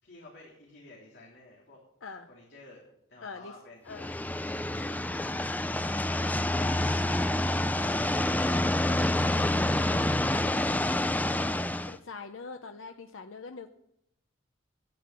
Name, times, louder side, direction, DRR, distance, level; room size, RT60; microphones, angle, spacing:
voice 1, 0.0-1.8 2.3-2.8 3.1-3.9 5.3-5.5 6.1-6.9, left 2 dB, 60° left, -4 dB, 3.3 m, -51 dB
voice 2, 3.2-3.5 3.8-4.1 11.9-13.7, left 4 dB, 90° left, 6 dB, 0.7 m, -43 dB
sound 1, 3.9-11.9, left 1 dB, 10° left, 0.5 m, -28 dB
12.5 x 10.5 x 7.6 m, 0.79 s
head